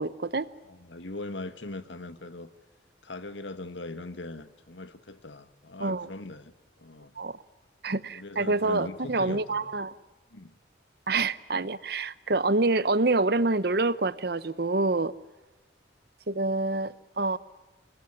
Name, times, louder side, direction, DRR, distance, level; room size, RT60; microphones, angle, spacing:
voice 1, 0.0-0.5 5.8-6.1 7.2-7.4 7.8-9.9 11.1-15.1 16.3-17.4, right 3 dB, 55° right, 0.9 m, -27 dB
voice 2, 0.7-2.5 3.0-6.5 6.8-7.1 8.1-9.7 10.3-10.5, left 2 dB, 80° left, 1.8 m, -40 dB
26.5 x 21.5 x 9.9 m
head